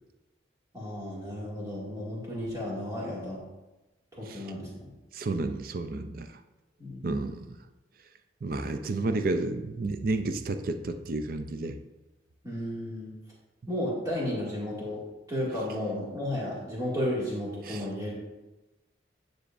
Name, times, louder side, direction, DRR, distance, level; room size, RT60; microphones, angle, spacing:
voice 1, 0.7-3.4 4.1-4.9 6.8-7.0 12.4-13.1 13.7-15.0 15.3-18.1, left 1 dB, 20° right, -6 dB, 2.2 m, -33 dB
voice 2, 5.1-6.3 7.0-7.6 8.4-11.8 17.7-17.8, right 2 dB, 50° right, 9 dB, 0.4 m, -31 dB
9.9 x 6.3 x 2.6 m, 1.1 s
head